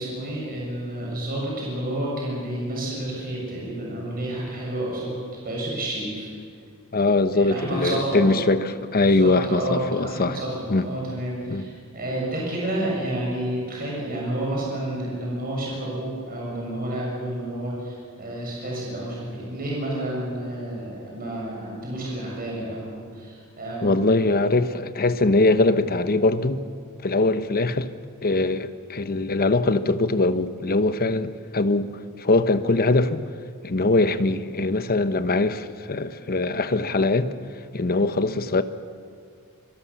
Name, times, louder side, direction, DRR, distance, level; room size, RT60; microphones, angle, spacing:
voice 1, 0.0-6.3 7.3-8.5 9.0-24.1, right 1 dB, 40° right, 7.1 m, -30 dB
voice 2, 6.9-10.4 10.7-10.9 11.5-11.7 23.8-26.6 27.0-27.9 28.2-31.9 32.2-33.2 33.6-37.3 37.7-38.6, left 2 dB, 45° left, 1.0 m, -22 dB
25.5 x 24.0 x 7.2 m
head